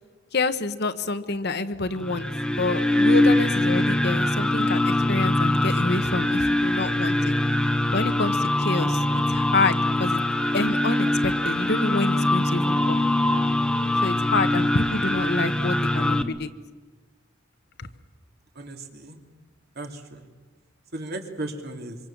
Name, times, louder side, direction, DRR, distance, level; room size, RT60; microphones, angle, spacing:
voice 1, 0.3-2.3 2.6-7.3 7.9-9.0 9.3-10.2 10.5-13.0 14.0-16.5 17.8-17.9, left 3 dB, 55° left, 11 dB, 1.2 m, -27 dB
sound 1, 2.0-16.2, left 1 dB, 5° left, 0.9 m, -23 dB
voice 2, 18.6-19.2 19.8-20.2 20.9-22.0, right 2 dB, 50° right, 5 dB, 2.8 m, -35 dB
26.0 x 25.5 x 7.3 m, 1.3 s
head